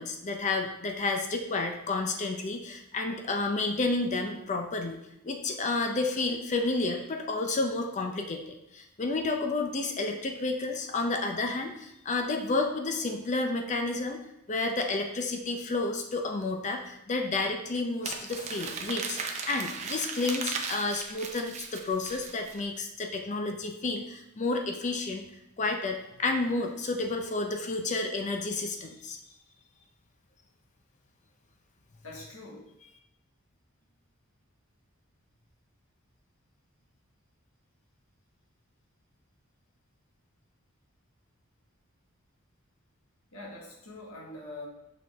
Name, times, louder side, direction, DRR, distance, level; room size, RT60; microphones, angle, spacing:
voice 1, 0.0-5.0 5.2-14.2 14.5-25.2 25.6-29.2, left 3 dB, 35° left, 4 dB, 0.5 m, -31 dB
Crumpling crinkling, 18.0-22.6, right 5 dB, 30° right, 0.6 m, -37 dB
voice 2, 32.0-32.7 43.3-44.7, left 2 dB, 75° left, -3 dB, 1.6 m, -43 dB
6.0 x 4.9 x 3.5 m, 0.86 s
head